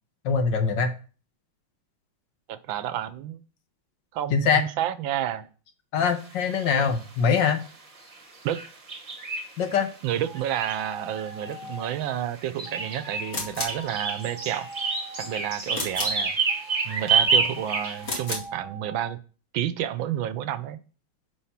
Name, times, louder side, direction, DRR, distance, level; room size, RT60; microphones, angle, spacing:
voice 1, 0.2-0.9 4.3-4.6 5.9-7.6 9.6-9.9, left 6 dB, 65° left, 8 dB, 1.6 m, -23 dB
voice 2, 2.5-3.4 4.1-5.5 8.4-8.6 10.0-14.7 15.2-16.4 16.8-19.2 19.5-20.8, right 11 dB, 75° right, 13 dB, 1.3 m, -30 dB
sound 1, 6.4-6.9 8.1-8.2 8.5-9.9 10.3-11.7 12.4-18.2, right 5 dB, 20° right, 1.1 m, -28 dB
sound 2, 10.2-12.0 12.6-15.5 16.5-19.1, right 1 dB, ahead, 1.5 m, -43 dB
sound 3, 13.3-13.8 15.7-16.2 18.0-18.5, left 2 dB, 40° left, 2.5 m, -32 dB
8.6 x 4.8 x 5.8 m, 0.38 s
omnidirectional pair, 2.2 m